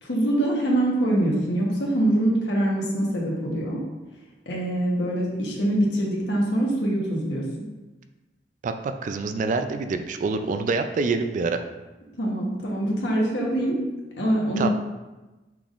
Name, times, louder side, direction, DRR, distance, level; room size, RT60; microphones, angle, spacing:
voice 1, 0.0-3.8 4.5-7.4 12.2-13.8 14.2-14.7, right 1 dB, 80° left, -2 dB, 1.1 m, -24 dB
voice 2, 8.6-11.6 14.6-14.7, right 4 dB, 45° right, 8 dB, 0.3 m, -26 dB
5.9 x 3.5 x 2.5 m, 1.1 s
head